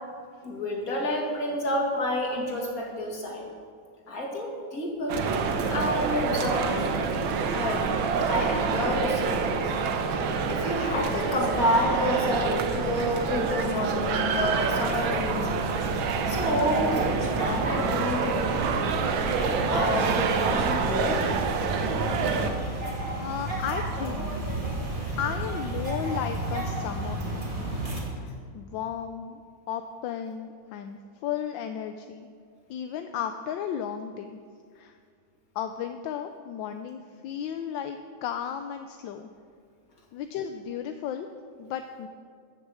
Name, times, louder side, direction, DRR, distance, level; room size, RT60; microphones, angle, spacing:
voice 1, 0.4-3.4 4.1-5.2 5.7-7.0 7.5-7.9 8.3-9.6 10.5-15.5 16.3-18.6 19.4-21.2, left 1 dB, 45° left, -1 dB, 2.6 m, -29 dB
sound 1, 5.1-22.5, right 5 dB, 85° right, 1.7 m, -27 dB
sound 2, 14.9-28.0, right 1 dB, 25° right, 2.3 m, -33 dB
voice 2, 23.1-24.4 25.2-27.8 28.2-29.4 29.7-32.3 32.7-34.4 34.7-34.9 35.5-39.3 40.1-41.3 41.6-42.1, left 8 dB, 80° left, 7 dB, 1.3 m, -34 dB
14.5 x 6.8 x 7.6 m, 2.1 s
omnidirectional pair, 2.1 m